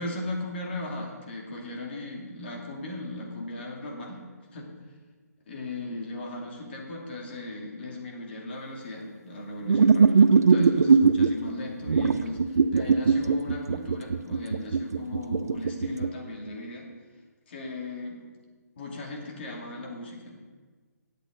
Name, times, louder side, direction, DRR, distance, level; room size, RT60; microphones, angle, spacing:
voice 1, 0.0-4.2 4.5-4.7 5.5-16.9 17.5-18.2 18.8-20.4, left 2 dB, 40° left, -1 dB, 2.7 m, -37 dB
sound 1, 9.7-11.3 11.9-16.1, right 5 dB, 65° right, 0.7 m, -20 dB
16.5 x 8.3 x 4.0 m, 1.4 s
hypercardioid pair, 160°, 9 cm